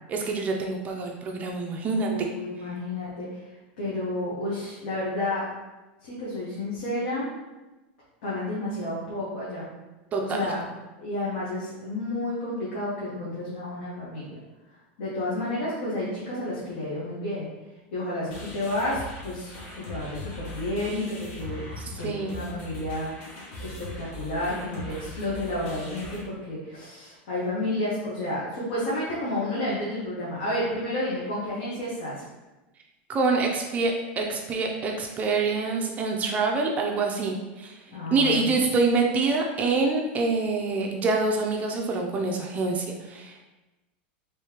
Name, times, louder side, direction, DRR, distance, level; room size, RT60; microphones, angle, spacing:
voice 1, 0.1-2.1 10.1-10.2 21.8-22.5 33.1-37.7 38.1-43.4, right 3 dB, 25° right, 1 dB, 0.4 m, -26 dB
voice 2, 1.9-3.4 3.8-5.4 6.0-7.3 8.2-9.7 10.2-10.6 11.0-14.4 15.0-17.5 17.9-21.6 21.9-32.2 37.9-38.5, left 1 dB, 75° left, -7 dB, 1.1 m, -31 dB
sound 1, 18.3-26.2, left 1 dB, 55° left, 1.2 m, -40 dB
3.4 x 3.2 x 2.9 m, 1.1 s
supercardioid pair, 140°, 6 cm